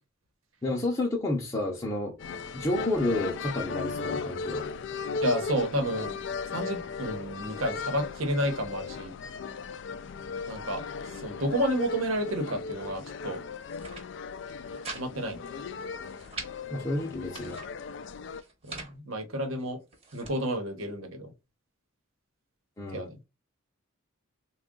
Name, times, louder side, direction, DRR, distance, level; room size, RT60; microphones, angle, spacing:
voice 1, 0.6-2.1 2.5-4.6 16.7-17.6 22.8-23.1, left 2 dB, 15° left, 0.6 m, -30 dB
sound 1, 2.2-18.4, left 5 dB, 60° left, 0.3 m, -37 dB
voice 2, 5.2-6.2 6.5-9.1 10.5-10.8 11.2-13.4 14.9-15.4 18.7-19.8 20.1-21.3 22.9-23.2, equal, 80° right, 1.0 m, -30 dB
sound 2, 13.6-14.1 14.4-15.0 15.3-15.4 15.8-16.5 17.1-17.7 18.3-18.9 19.6-20.4, right 3 dB, 30° right, 0.9 m, -43 dB
3.6 x 2.3 x 3.7 m
head